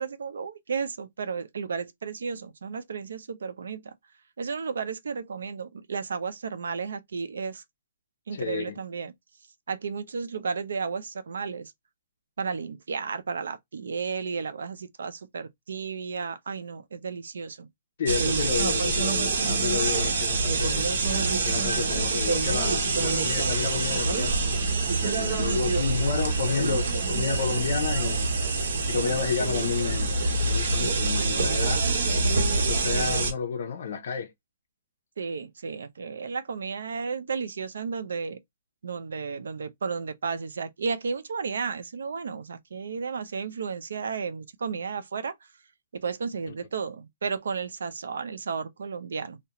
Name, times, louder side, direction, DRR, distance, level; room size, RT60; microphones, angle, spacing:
voice 1, 0.0-3.9 4.4-7.6 8.3-9.1 9.7-11.7 12.4-17.7 25.4-25.7 35.2-38.4 38.8-45.3 45.9-49.4, right 5 dB, 85° right, 0.4 m, -33 dB
voice 2, 8.3-8.8 18.0-20.9 21.4-24.7 25.0-28.3 28.9-31.8 32.5-34.3, left 6 dB, 55° left, 0.5 m, -31 dB
sound 1, 18.1-33.3, right 3 dB, 65° right, 0.8 m, -25 dB
2.4 x 2.1 x 2.8 m
hypercardioid pair, 165°, 0 cm